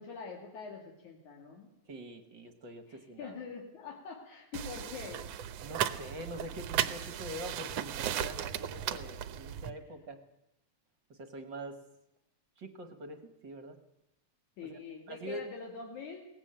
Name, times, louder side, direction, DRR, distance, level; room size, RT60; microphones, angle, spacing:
voice 1, 0.0-1.7 2.9-5.3 14.6-16.3, left 5 dB, 75° left, 0 dB, 3.6 m, -44 dB
voice 2, 1.9-3.4 5.6-10.2 11.1-11.8 12.6-13.8 14.6-14.8 15.1-15.4, right 1 dB, 45° right, 8 dB, 1.7 m, -44 dB
sound 1, 4.5-9.7, right 10 dB, 65° right, 1.8 m, -36 dB
21.0 x 18.0 x 8.9 m, 0.88 s
omnidirectional pair, 3.5 m